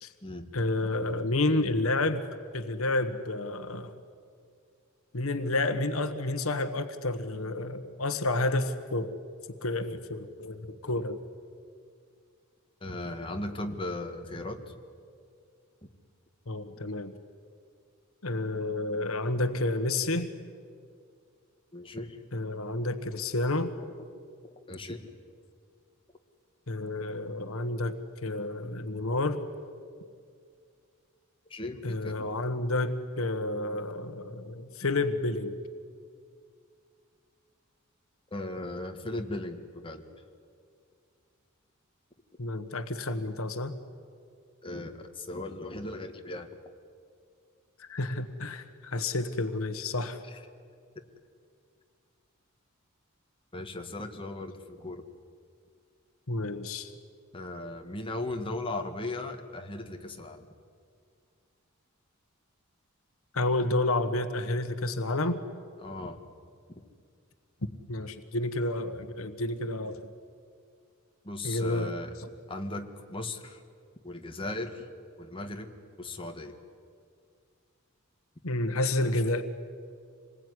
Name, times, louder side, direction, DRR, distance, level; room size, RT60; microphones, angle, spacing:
voice 1, 0.5-2.3 2.5-3.9 5.1-9.1 9.6-11.2 16.5-17.1 18.2-20.3 22.3-23.7 26.7-27.9 28.2-29.4 31.8-35.6 42.4-43.7 47.8-50.2 56.3-56.9 63.3-65.4 67.9-70.1 71.4-71.9 78.4-79.4, left 2 dB, 75° left, 9 dB, 1.4 m, -30 dB
voice 2, 12.8-14.7 21.7-22.2 24.7-25.1 31.5-32.3 38.3-40.0 44.6-46.5 50.2-50.4 53.5-55.0 57.3-60.5 65.8-66.2 71.2-72.2 72.5-73.6 74.0-74.9 75.2-76.6, left 2 dB, 25° left, 4 dB, 1.9 m, -37 dB
26.5 x 21.0 x 9.8 m, 2.2 s
head